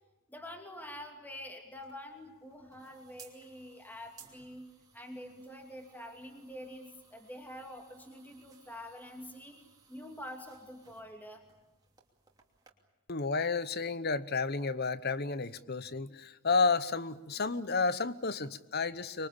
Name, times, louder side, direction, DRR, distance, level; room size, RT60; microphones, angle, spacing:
voice 1, 0.3-11.4, left 1 dB, 10° left, 3 dB, 2.7 m, -47 dB
sound 1, 1.7-12.7, right 6 dB, 20° right, 2.9 m, -62 dB
voice 2, 13.1-19.3, left 4 dB, 45° left, 15 dB, 0.9 m, -31 dB
25.5 x 23.5 x 8.8 m, 1.0 s
head